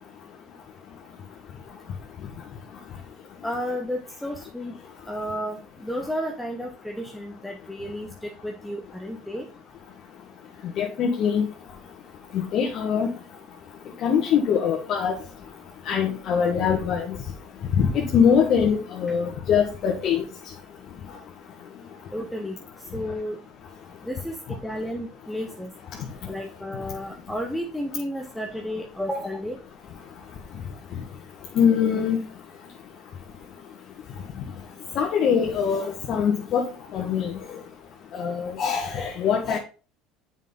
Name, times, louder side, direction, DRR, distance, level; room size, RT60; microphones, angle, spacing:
voice 1, 3.4-4.8 5.1-9.4 22.1-22.6 22.9-23.4 24.0-24.3 24.6-25.7 26.2-29.6, equal, 5° left, 2 dB, 1.0 m, -32 dB
voice 2, 10.8-11.4 12.3-13.1 14.0-15.1 15.8-17.1 17.8-20.2 31.5-32.2 34.9-36.6 36.9-37.4 38.1-39.6, left 7 dB, 55° left, 0 dB, 1.4 m, -23 dB
7.3 x 5.6 x 3.9 m, 0.36 s
supercardioid pair, 100°, 0 cm